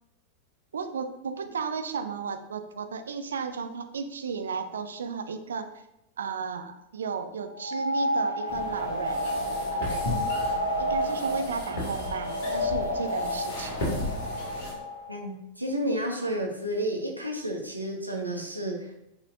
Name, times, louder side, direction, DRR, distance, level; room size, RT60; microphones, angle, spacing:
voice 1, 0.7-5.8 6.2-9.2 9.7-10.1 10.8-13.8, right 5 dB, 65° right, 8 dB, 0.6 m, -34 dB
sound 1, 7.5-15.2, left 1 dB, 85° left, 0.9 m, -30 dB
sound 2, 8.5-14.7, left 1 dB, 50° left, 2.4 m, -36 dB
voice 2, 15.1-18.9, right 1 dB, 85° right, 0 dB, 1.0 m, -31 dB
9.8 x 4.1 x 2.7 m, 0.85 s
figure-of-eight pair, 90°, 0 cm